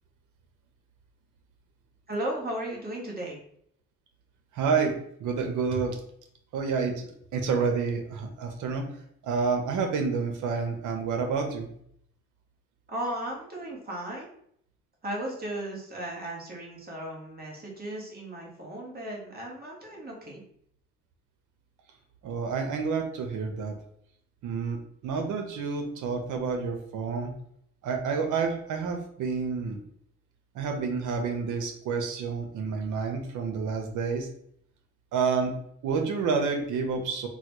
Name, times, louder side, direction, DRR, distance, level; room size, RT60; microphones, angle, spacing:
voice 1, 2.1-3.4 12.9-14.3 15.0-20.4, right 1 dB, 30° right, -2 dB, 1.3 m, -35 dB
voice 2, 4.5-4.9 5.2-6.0 6.5-8.9 9.2-11.7 22.2-23.8 24.4-27.3 27.8-29.8 30.5-34.3 35.1-35.5 35.8-37.3, right 5 dB, 80° right, 4 dB, 0.8 m, -29 dB
3.9 x 2.2 x 2.9 m, 0.68 s
cardioid pair, 90°, 30 cm